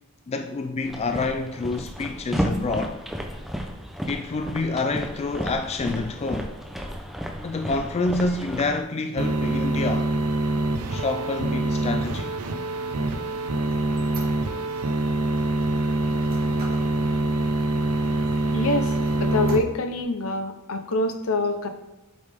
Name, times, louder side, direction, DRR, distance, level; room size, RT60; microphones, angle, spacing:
voice 1, 0.3-3.0 4.1-6.5 7.4-10.1 10.9-12.4, left 3 dB, 30° left, 0.3 m, -28 dB
sound 1, 0.8-8.8, equal, ahead, 0.7 m, -33 dB
sound 2, 9.2-19.6, right 2 dB, 85° right, 0.7 m, -25 dB
Squeak, 11.9-14.9 15.4-17.0 17.4-17.5 17.9-18.6 19.0-20.0, right 4 dB, 45° right, 2.0 m, -46 dB
voice 2, 18.5-21.7, left 2 dB, 70° left, 0.8 m, -26 dB
8.1 x 5.4 x 3.5 m
head